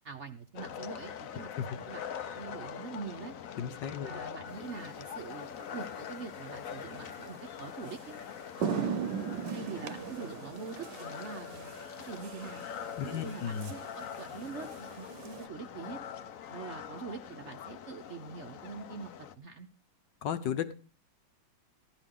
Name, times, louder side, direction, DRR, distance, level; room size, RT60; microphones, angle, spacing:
voice 1, 0.0-2.0 2.3-3.3 4.0-8.1 9.5-11.7 12.1-12.6 13.0-16.0 16.5-19.1 19.4-19.7, right 5 dB, 50° right, 6 dB, 0.9 m, -44 dB
sound 1, 0.6-19.4, left 8 dB, 60° left, 1.0 m, -44 dB
voice 2, 3.6-4.2 13.0-13.7 20.2-20.7, left 8 dB, 75° left, 10 dB, 1.6 m, -34 dB
sound 2, 4.9-5.1 7.3-7.4 7.9-8.0 8.3-15.5, right 7 dB, 70° right, 1.3 m, -39 dB
15.0 x 11.0 x 3.7 m, 0.34 s
omnidirectional pair, 2.0 m